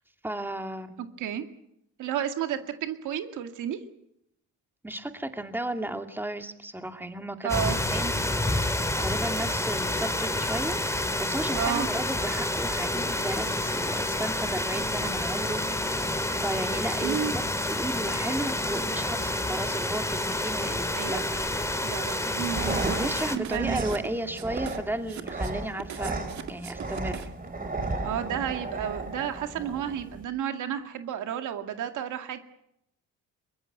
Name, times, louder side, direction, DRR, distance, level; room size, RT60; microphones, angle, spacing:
voice 1, 0.2-1.0 4.8-16.0 16.3-21.4 22.6-26.2 26.5-27.3, right 1 dB, 5° right, 6 dB, 2.3 m, -34 dB
voice 2, 1.0-1.5 2.0-3.8 7.4-7.8 11.5-11.9 17.0-17.3 20.9-21.3 21.8-23.0 23.3-23.8 28.0-32.4, right 9 dB, 80° right, 7 dB, 2.2 m, -31 dB
sound 1, 7.5-23.4, left 1 dB, 10° left, 2.7 m, -29 dB
sound 2, 22.3-30.2, right 2 dB, 30° right, 5.2 m, -34 dB
sound 3, 22.6-27.5, right 9 dB, 65° right, 2.1 m, -41 dB
23.0 x 21.0 x 7.9 m, 0.79 s
cardioid pair, 90°, 30 cm